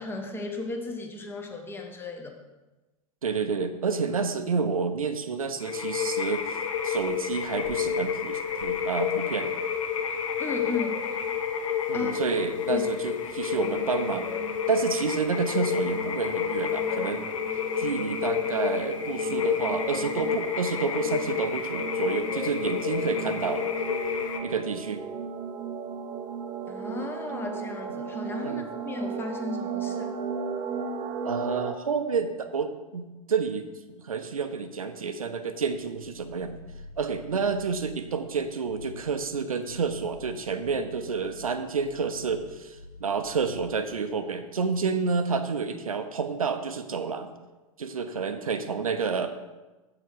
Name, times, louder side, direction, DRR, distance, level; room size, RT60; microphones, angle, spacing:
voice 1, 0.0-2.3 10.4-11.0 11.9-12.2 12.7-12.9 26.7-30.2, left 3 dB, 10° left, 3 dB, 1.0 m, -35 dB
voice 2, 3.2-6.6 6.8-9.5 11.9-14.3 14.7-17.3 17.8-23.7 24.4-25.0 28.4-28.7 31.2-33.7 34.0-36.6 37.0-47.3 47.8-49.4, right 5 dB, 75° right, 9 dB, 0.7 m, -29 dB
sound 1, 5.6-24.4, left 8 dB, 60° left, 0.9 m, -30 dB
sound 2, 13.4-31.7, right 6 dB, 20° right, 0.6 m, -37 dB
sound 3, 35.7-38.3 38.6-39.1 39.6-43.8, equal, 85° left, 0.7 m, -47 dB
7.5 x 4.8 x 6.3 m, 1.1 s
figure-of-eight pair, 95°, 18 cm